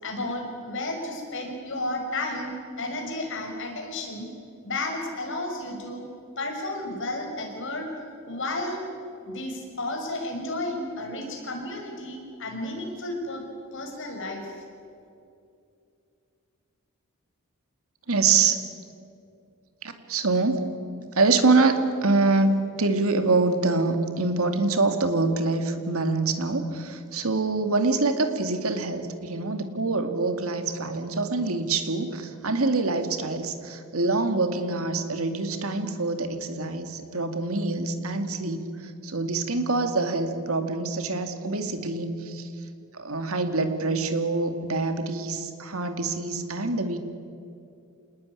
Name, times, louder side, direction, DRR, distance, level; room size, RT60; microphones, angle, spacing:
voice 1, 0.0-4.3 4.6-6.1 6.4-7.9 8.2-8.8 9.2-13.4 13.7-14.6, left 2 dB, 60° left, 2 dB, 6.0 m, -32 dB
voice 2, 18.1-18.6 19.8-20.7 21.1-42.5 42.9-47.0, right 3 dB, 70° right, 7 dB, 2.3 m, -25 dB
27.5 x 19.5 x 9.8 m, 2.5 s
head